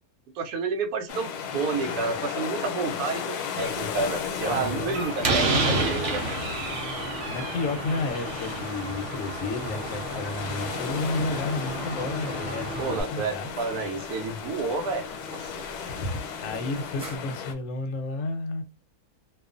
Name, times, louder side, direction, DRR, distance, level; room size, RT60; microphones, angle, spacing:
voice 1, 0.3-6.2 12.8-15.0 15.3-15.6, right 4 dB, 85° right, 1.1 m, -30 dB
sound 1, 1.1-17.5, left 7 dB, 90° left, 1.1 m, -35 dB
sound 2, 3.6-17.2, left 1 dB, 5° right, 0.5 m, -45 dB
voice 2, 4.4-5.0 7.3-13.5 15.9-18.6, left 2 dB, 70° left, 0.9 m, -32 dB
Slam, 4.4-13.0, right 3 dB, 65° right, 0.8 m, -31 dB
2.4 x 2.3 x 2.4 m
omnidirectional pair, 1.6 m